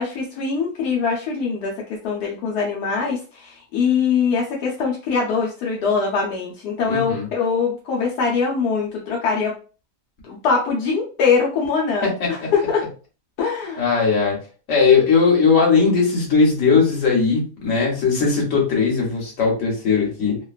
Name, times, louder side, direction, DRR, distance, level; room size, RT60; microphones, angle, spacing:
voice 1, 0.0-9.5 10.3-12.8 13.4-13.8, left 5 dB, 75° left, -2 dB, 1.2 m, -22 dB
voice 2, 6.9-7.3 12.0-12.5 13.8-14.4 14.7-20.4, left 5 dB, 55° left, -1 dB, 1.3 m, -18 dB
2.9 x 2.2 x 2.4 m, 0.36 s
omnidirectional pair, 1.7 m